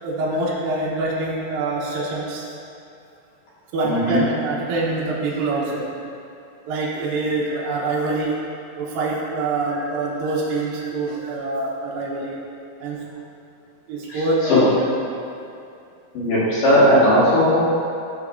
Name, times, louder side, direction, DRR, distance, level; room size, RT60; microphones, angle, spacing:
voice 1, 0.0-2.4 3.7-5.9 6.7-8.3 8.8-12.4 12.8-13.0 13.9-14.7, right 2 dB, 70° right, -5 dB, 2.6 m, -25 dB
voice 2, 3.8-4.2 14.1-14.6 16.1-17.6, left 1 dB, 60° left, -10 dB, 2.8 m, -17 dB
13.0 x 5.7 x 2.6 m, 2.6 s
omnidirectional pair, 4.7 m